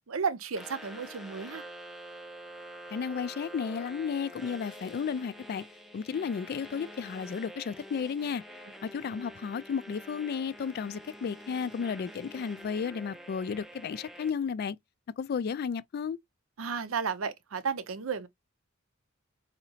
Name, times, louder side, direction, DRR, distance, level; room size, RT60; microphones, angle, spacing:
voice 1, 0.1-1.6 16.6-18.3, right 6 dB, 80° right, 0.6 m, -33 dB
sound 1, 0.6-14.3, equal, ahead, 0.5 m, -47 dB
voice 2, 2.9-5.6 5.9-8.4 8.8-14.8 15.2-16.2, left 6 dB, 50° left, 0.3 m, -33 dB
4.1 x 2.8 x 2.7 m
head